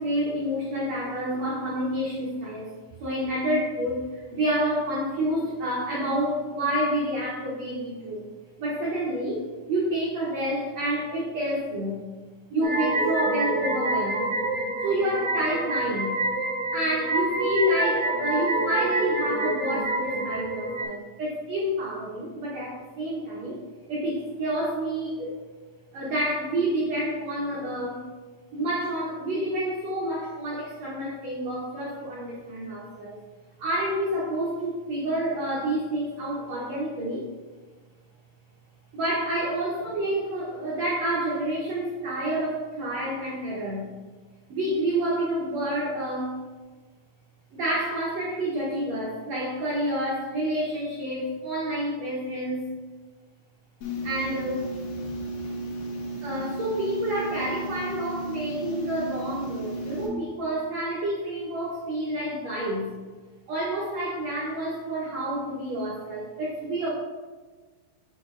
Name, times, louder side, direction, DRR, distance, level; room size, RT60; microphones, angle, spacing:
voice 1, 0.0-2.7 3.0-8.2 8.6-12.0 12.5-14.3 14.8-16.2 16.7-23.6 23.9-25.3 25.9-28.0 28.5-33.2 33.6-37.3 38.9-43.9 44.5-46.4 47.5-52.6 54.0-54.7 56.2-62.9 63.5-66.9, right 1 dB, 75° right, -6 dB, 1.6 m, -29 dB
sound 1, 12.6-20.8, right 2 dB, 55° right, 1.7 m, -27 dB
sound 2, 53.8-60.1, right 1 dB, 75° left, 3.2 m, -34 dB
7.1 x 6.1 x 2.5 m, 1.4 s
omnidirectional pair, 4.4 m